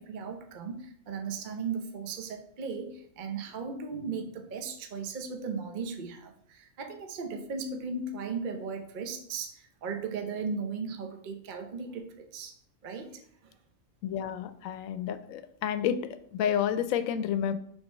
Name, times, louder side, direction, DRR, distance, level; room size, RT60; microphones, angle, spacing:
voice 1, 0.0-13.6, right 5 dB, 45° right, 5 dB, 0.7 m, -37 dB
voice 2, 14.0-16.0 16.3-17.5, left 9 dB, 80° left, 13 dB, 1.0 m, -30 dB
5.9 x 3.7 x 5.4 m, 0.65 s
omnidirectional pair, 1.4 m